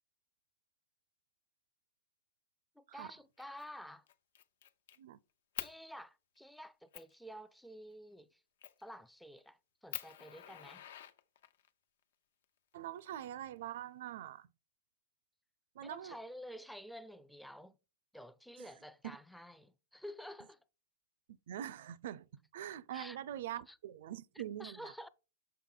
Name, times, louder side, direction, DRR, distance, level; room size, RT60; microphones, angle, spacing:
voice 1, 2.8-4.1 5.6-8.4 8.8-10.8 15.8-17.8 18.1-20.6 22.9-23.2 23.7-23.8 24.6-25.1, equal, ahead, 0.4 m, -50 dB
Fire, 3.4-3.7 4.1-5.0 5.6-5.8 6.4-6.5 6.9-7.1 8.6-8.9 9.4-9.5 9.9-11.7 12.7-13.7, left 10 dB, 75° left, 0.8 m, -46 dB
voice 2, 12.7-14.5 15.7-16.2 18.6-18.7 21.3-22.3 22.5-24.9, right 11 dB, 65° right, 0.4 m, -44 dB
6.9 x 5.6 x 3.8 m
hypercardioid pair, 130°, 0 cm